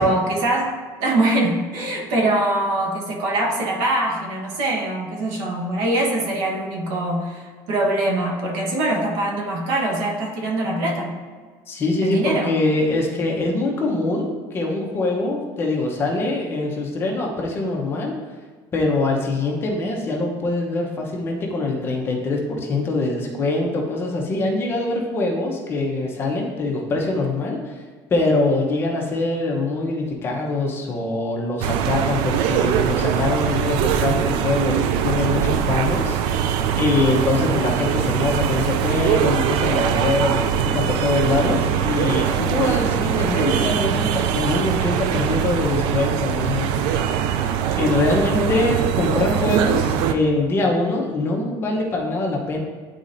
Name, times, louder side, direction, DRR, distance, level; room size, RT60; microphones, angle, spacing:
voice 1, 0.0-11.2 12.0-12.6, right 1 dB, 85° right, 0 dB, 1.2 m, -23 dB
voice 2, 11.7-18.1 18.7-27.7 28.1-47.1 47.8-52.6, left 2 dB, 25° left, -1 dB, 0.8 m, -23 dB
sound 1, 31.6-50.1, right 8 dB, 65° right, 0.4 m, -22 dB
10.0 x 4.1 x 2.6 m, 1.5 s
cardioid pair, 175°, 9 cm